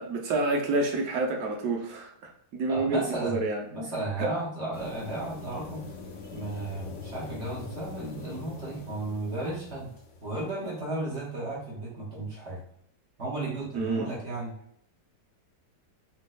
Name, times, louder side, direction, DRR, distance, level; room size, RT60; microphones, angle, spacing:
voice 1, 0.0-3.6 4.2-4.3 13.7-14.1, right 3 dB, 70° right, 3 dB, 0.9 m, -28 dB
voice 2, 2.7-3.4 3.7-5.9 6.3-9.9 10.2-12.6 13.2-14.5, right 2 dB, 50° right, -5 dB, 0.9 m, -34 dB
sound 1, 4.7-10.7, left 4 dB, 85° left, 0.6 m, -43 dB
4.1 x 2.5 x 2.2 m, 0.68 s
omnidirectional pair, 1.9 m